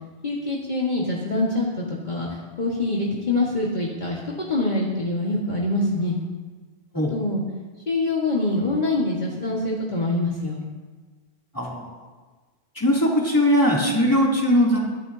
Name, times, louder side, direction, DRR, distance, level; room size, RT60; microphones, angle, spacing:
voice 1, 0.2-6.2 7.1-7.4 7.9-10.6, left 2 dB, 45° left, -5 dB, 1.9 m, -25 dB
voice 2, 11.5-11.9 12.7-14.8, equal, 20° left, -4 dB, 3.0 m, -20 dB
23.0 x 12.0 x 2.8 m, 1.4 s
omnidirectional pair, 1.0 m